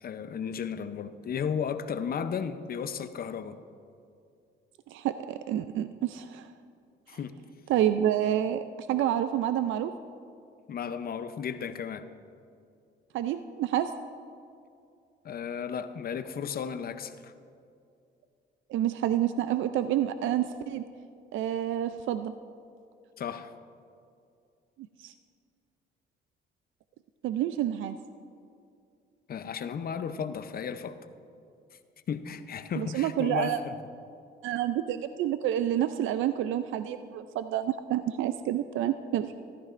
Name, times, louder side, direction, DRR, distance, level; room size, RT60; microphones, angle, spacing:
voice 1, 0.0-3.6 7.1-7.3 10.7-12.1 15.2-17.3 23.2-23.5 29.3-31.0 32.1-33.8, left 7 dB, 50° left, 11 dB, 0.7 m, -34 dB
voice 2, 4.9-6.4 7.7-8.6 8.9-9.9 13.1-13.9 18.7-20.8 21.3-22.3 25.0-25.1 27.2-28.0 32.8-33.6 34.4-39.3, right 11 dB, 80° right, 11 dB, 0.4 m, -28 dB
14.5 x 13.5 x 2.5 m, 2.5 s
cardioid pair, 90°, 20 cm